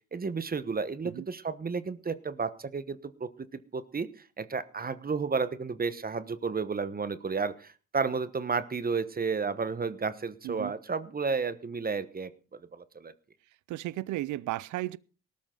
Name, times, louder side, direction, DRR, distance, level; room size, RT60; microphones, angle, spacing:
voice 1, 0.1-4.1 4.4-12.3 12.7-13.1, right 5 dB, 30° right, 1.2 m, -32 dB
voice 2, 13.7-15.0, right 16 dB, 80° right, 0.6 m, -34 dB
18.5 x 13.0 x 3.9 m
cardioid pair, 90°, 30 cm